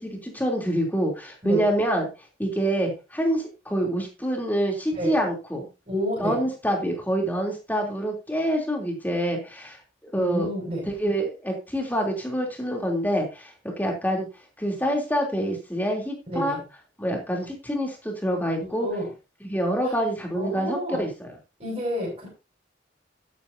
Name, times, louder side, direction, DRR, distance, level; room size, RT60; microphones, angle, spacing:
voice 1, 0.0-2.1 2.4-5.7 6.2-9.8 10.0-10.5 10.8-14.3 14.6-16.6 17.0-18.9 19.4-21.3, equal, 10° left, 0 dB, 3.2 m, -26 dB
voice 2, 5.9-6.4 10.2-10.8 16.3-16.6 18.6-19.1 19.8-19.9 20.3-21.0 21.6-22.3, equal, 35° right, -3 dB, 6.6 m, -29 dB
12.5 x 10.5 x 2.8 m, 0.29 s
head